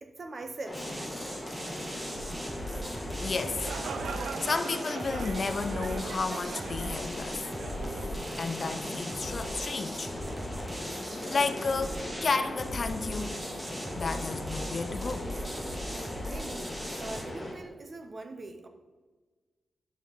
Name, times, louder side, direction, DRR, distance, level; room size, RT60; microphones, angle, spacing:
voice 1, 0.0-0.9 2.0-2.2 7.7-7.8 16.3-16.7 17.0-18.7, right 2 dB, 35° right, 6 dB, 0.8 m, -42 dB
sound 1, 0.6-17.5, left 1 dB, 15° left, 1.4 m, -39 dB
sound 2, 0.7-17.2, equal, 15° right, 1.2 m, -39 dB
voice 2, 3.2-3.6 4.4-7.5 8.4-10.1 11.0-13.5 14.0-15.3, left 4 dB, 40° left, 11 dB, 0.4 m, -32 dB
sound 3, 3.3-9.0, right 5 dB, 75° right, 0.4 m, -41 dB
10.5 x 6.0 x 3.6 m, 1.3 s
wide cardioid pair, 150°, 0 cm